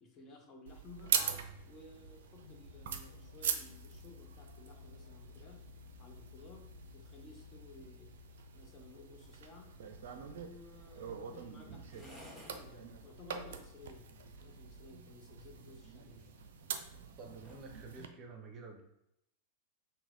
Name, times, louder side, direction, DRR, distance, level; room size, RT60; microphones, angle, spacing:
voice 1, 0.0-1.1 1.7-5.6 6.0-8.2 8.5-9.7 10.3-16.2, left 3 dB, 25° left, 1 dB, 0.9 m, -56 dB
sound 1, 0.7-18.1, right 7 dB, 55° right, 0.5 m, -43 dB
sound 2, 1.7-17.9, left 5 dB, 75° left, 0.4 m, -58 dB
sound 3, 9.9-17.7, equal, 5° left, 1.4 m, -63 dB
voice 2, 17.2-18.8, right 3 dB, 30° right, 3 dB, 0.8 m, -50 dB
6.0 x 2.2 x 3.7 m, 0.82 s
figure-of-eight pair, 90°, 0 cm